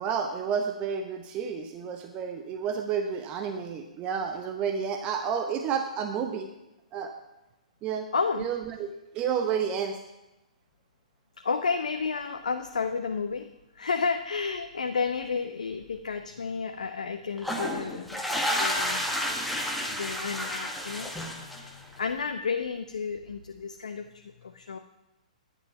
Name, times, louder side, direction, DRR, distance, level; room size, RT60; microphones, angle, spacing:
voice 1, 0.0-6.5 6.9-7.1 7.8-8.1 8.4-8.9 9.1-10.0, right 7 dB, 25° right, 5 dB, 0.9 m, -30 dB
voice 2, 8.1-8.5 11.4-13.5 13.8-18.2 18.6-19.2 19.5-24.8, left 5 dB, 70° left, 6 dB, 0.8 m, -32 dB
sound 1, 17.4-21.9, equal, ahead, 1.7 m, -30 dB
11.5 x 10.0 x 5.8 m, 0.96 s
figure-of-eight pair, 115°, 4 cm